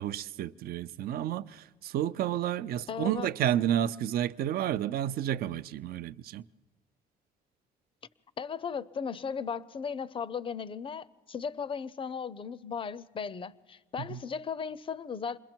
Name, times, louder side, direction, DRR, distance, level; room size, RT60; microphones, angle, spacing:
voice 1, 0.0-6.4 14.0-14.2, right 11 dB, 65° right, 0.6 m, -31 dB
voice 2, 2.9-3.3 8.4-15.4, left 6 dB, 30° left, 0.6 m, -36 dB
28.0 x 21.0 x 4.5 m
cardioid pair, 110°, 17 cm